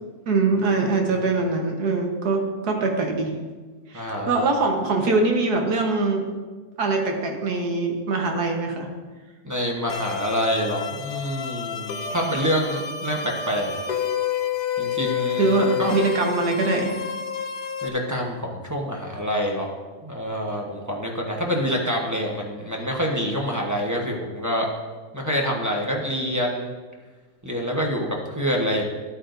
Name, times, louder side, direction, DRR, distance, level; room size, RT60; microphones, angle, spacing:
voice 1, 0.3-3.4 3.9-6.3 6.8-8.9 15.4-17.0, right 3 dB, 85° right, 2 dB, 1.7 m, -23 dB
voice 2, 3.9-4.3 9.4-13.7 14.8-16.0 17.8-19.7 20.0-24.7 25.1-26.7 27.4-28.8, equal, 15° right, -1 dB, 0.9 m, -26 dB
sound 1, 9.9-17.9, left 8 dB, 90° left, 1.3 m, -29 dB
12.5 x 8.7 x 2.6 m, 1.4 s
omnidirectional pair, 1.6 m